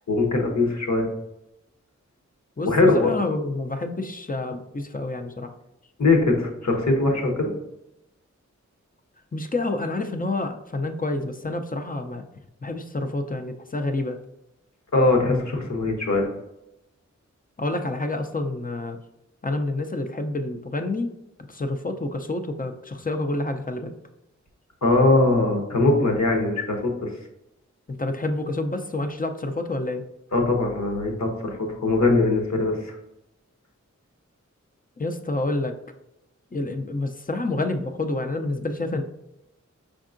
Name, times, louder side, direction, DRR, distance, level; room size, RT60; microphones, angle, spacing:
voice 1, 0.1-1.1 2.6-3.1 6.0-7.5 14.9-16.3 24.8-27.1 30.3-33.0, left 2 dB, 65° left, 2 dB, 0.9 m, -21 dB
voice 2, 2.6-5.5 9.3-12.2 12.6-14.2 17.6-19.0 19.4-21.1 21.5-23.9 27.9-30.0 35.0-35.8 36.5-39.0, left 2 dB, 30° left, 7 dB, 0.4 m, -28 dB
5.2 x 3.6 x 2.5 m, 0.89 s
wide cardioid pair, 65°, 30 cm